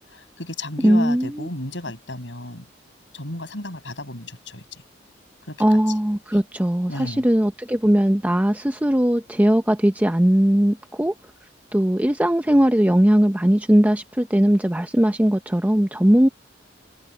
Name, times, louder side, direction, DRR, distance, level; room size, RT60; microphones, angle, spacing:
voice 1, 0.0-2.6 3.1-4.6 5.5-5.6 6.9-7.2, left 1 dB, 90° left, 6.6 m, -33 dB
voice 2, 0.8-1.5 5.6-11.1 11.7-16.3, equal, 10° right, 0.7 m, -19 dB
head